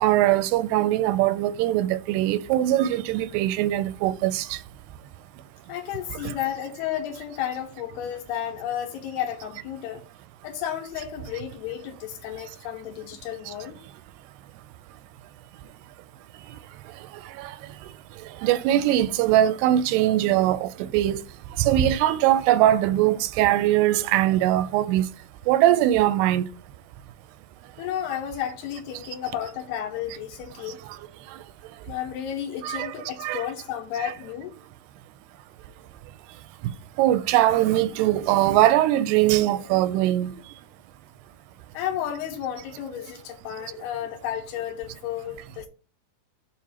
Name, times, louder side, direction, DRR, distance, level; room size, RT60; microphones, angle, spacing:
voice 1, 0.0-4.4 18.4-21.2 21.6-25.0 25.5-26.4 32.6-32.9 33.2-33.4 34.0-34.1 37.0-40.3, right 13 dB, 90° right, 2.6 m, -21 dB
voice 2, 5.7-10.0 10.4-13.8 27.8-30.8 31.8-34.5 41.7-45.7, left 10 dB, 80° left, 3.0 m, -32 dB
7.0 x 2.5 x 5.6 m
omnidirectional pair, 4.6 m